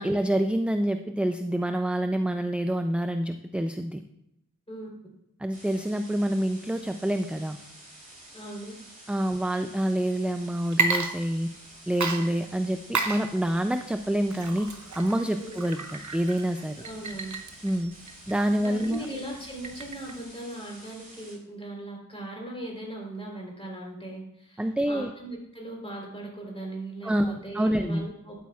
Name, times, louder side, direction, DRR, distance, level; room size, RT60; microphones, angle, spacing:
voice 1, 0.0-4.0 5.4-7.6 9.1-11.5 11.9-14.7 14.9-16.8 17.6-17.9 18.3-19.1 24.6-25.1 27.0-28.1, right 1 dB, 5° right, 7 dB, 0.3 m, -27 dB
sound 1, 5.5-21.3, right 1 dB, 25° right, 3.4 m, -49 dB
voice 2, 8.3-8.7 15.4-15.6 16.8-17.3 18.6-28.4, right 1 dB, 15° left, -2 dB, 3.4 m, -39 dB
Water / Liquid, 10.6-11.7 12.0-20.2, right 3 dB, 60° right, 0.9 m, -33 dB
12.5 x 8.5 x 2.4 m, 0.82 s
wide cardioid pair, 75°, 33 cm